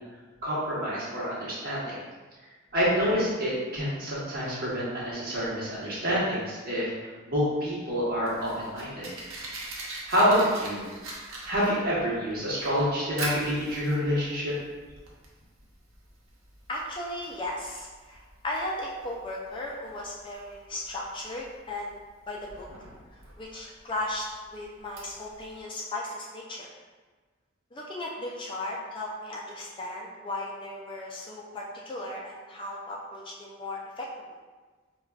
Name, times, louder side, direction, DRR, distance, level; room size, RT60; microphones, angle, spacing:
voice 1, 0.4-1.9 2.7-6.9 7.3-9.1 10.1-10.8 11.5-14.5, equal, 45° right, -7 dB, 1.0 m, -27 dB
Fire, 7.9-25.6, right 2 dB, 80° right, 0.7 m, -42 dB
voice 2, 16.7-21.9 22.3-22.7 23.1-26.7 27.7-34.1, left 1 dB, 25° left, -2 dB, 0.3 m, -36 dB
4.7 x 2.2 x 2.3 m, 1.3 s
head